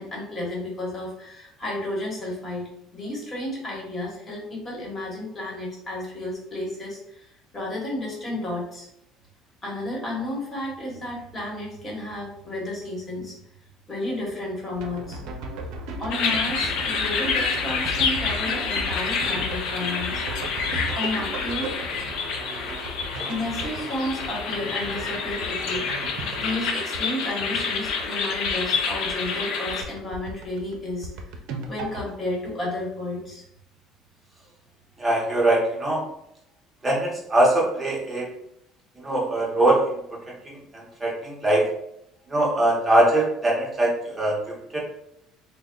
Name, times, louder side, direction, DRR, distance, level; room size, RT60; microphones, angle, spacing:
voice 1, 0.0-8.9 9.6-13.3 13.9-15.2 16.0-20.5 20.9-21.8 23.3-31.1 31.7-33.4, left 1 dB, 25° left, -3 dB, 1.3 m, -32 dB
sound 1, 14.7-29.4 29.7-32.1, right 1 dB, 70° right, 0.6 m, -36 dB
sound 2, 16.1-29.8, left 5 dB, 65° left, 0.6 m, -28 dB
voice 2, 35.0-36.0 36.8-38.3 39.0-39.8 41.0-41.7 42.3-44.4 44.7-44.8, right 1 dB, 15° right, -4 dB, 0.9 m, -21 dB
3.4 x 2.2 x 3.7 m, 0.77 s
cardioid pair, 140°, 0 cm